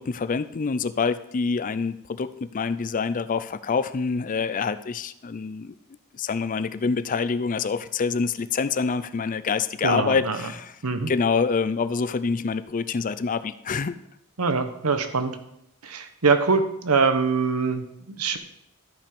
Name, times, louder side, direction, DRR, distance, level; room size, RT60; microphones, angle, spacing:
voice 1, 0.0-5.7 6.1-10.7 11.1-13.9, left 5 dB, 35° left, 13 dB, 0.4 m, -26 dB
voice 2, 9.8-10.4 10.8-11.1 14.4-15.4 15.8-18.4, right 4 dB, 85° right, 8 dB, 1.1 m, -23 dB
13.0 x 5.7 x 5.3 m, 0.77 s
head